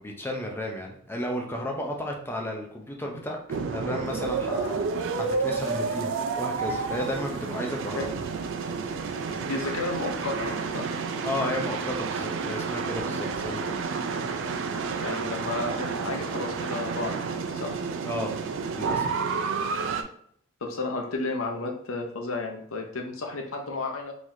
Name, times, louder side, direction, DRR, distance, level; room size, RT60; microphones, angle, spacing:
voice 1, 0.0-8.1 11.2-13.8 18.1-18.3 18.8-19.2, left 1 dB, 10° left, 1 dB, 0.5 m, -33 dB
sound 1, 3.5-20.0, right 4 dB, 65° right, 0.3 m, -30 dB
voice 2, 9.5-10.9 15.0-17.7 20.6-24.1, left 3 dB, 85° left, 2 dB, 0.7 m, -32 dB
3.9 x 3.1 x 2.6 m, 0.64 s
head